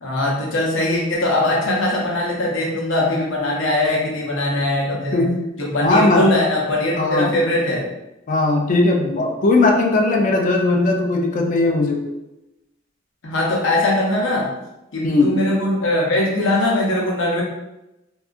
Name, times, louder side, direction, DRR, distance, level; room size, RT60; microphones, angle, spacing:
voice 1, 0.0-5.2 5.6-7.9 13.2-14.5 14.9-17.4, left 1 dB, 85° left, -3 dB, 0.7 m, -21 dB
voice 2, 5.1-5.5 5.8-6.3 7.0-7.4 8.3-12.0 15.0-15.4, left 2 dB, 40° left, 1 dB, 0.4 m, -18 dB
2.7 x 2.3 x 2.4 m, 0.95 s
head